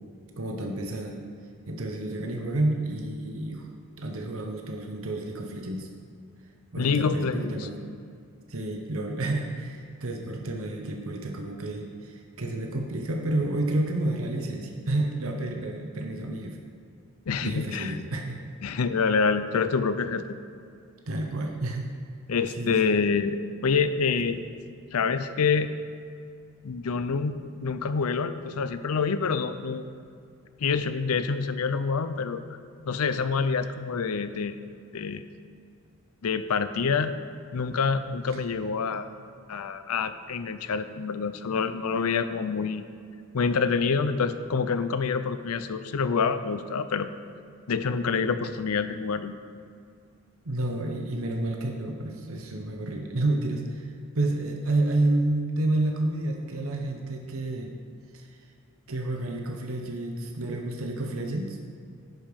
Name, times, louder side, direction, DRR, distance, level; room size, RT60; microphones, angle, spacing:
voice 1, 0.4-1.2 1.7-3.7 4.0-5.9 6.7-7.8 8.5-16.6 17.4-18.4 21.1-21.9 22.5-22.9 24.2-24.3 50.4-57.7 58.1-58.3 58.9-61.6, right 2 dB, 70° right, 2 dB, 0.9 m, -30 dB
voice 2, 6.8-7.5 17.3-17.9 18.6-20.4 22.3-24.4 24.9-25.7 26.6-29.8 30.6-32.4 32.8-34.5 34.9-35.2 36.2-37.2 37.5-39.1 39.5-42.8 43.3-47.1 47.7-49.3, left 5 dB, 80° left, 11 dB, 0.5 m, -27 dB
11.0 x 5.0 x 5.2 m, 2.4 s
head